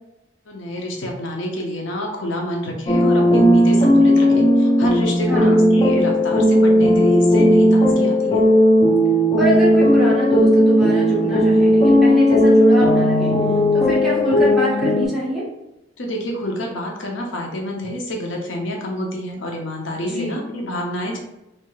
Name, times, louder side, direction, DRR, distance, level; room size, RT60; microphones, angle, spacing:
voice 1, 0.5-8.4 16.0-21.2, equal, 75° left, 1 dB, 0.6 m, -28 dB
sound 1, 2.9-15.0, equal, 30° left, 0.5 m, -15 dB
voice 2, 5.2-5.6 9.4-13.3 13.7-15.5 20.0-20.3, right 1 dB, ahead, -8 dB, 1.2 m, -24 dB
3.3 x 3.1 x 2.3 m, 0.93 s
head